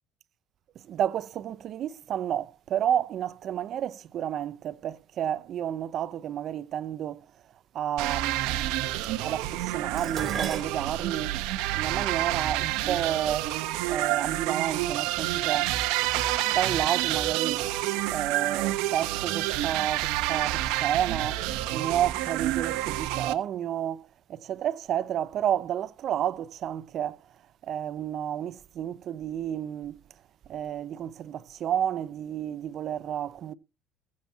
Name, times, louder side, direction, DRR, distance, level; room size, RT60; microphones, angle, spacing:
voice 1, 0.8-7.3 7.7-11.4 11.7-13.5 13.8-15.8 16.4-17.7 18.1-27.2 27.6-30.0 30.5-33.5, right 10 dB, 50° right, 0.9 m, -31 dB
sound 1, 8.0-23.3, right 15 dB, 75° right, 1.2 m, -28 dB
Dishes pots and pans, 10.0-14.3 15.2-15.6 16.0-16.8 17.1-17.2, right 6 dB, 35° right, 4.1 m, -39 dB
21.0 x 7.4 x 3.0 m
supercardioid pair, 105°, 0 cm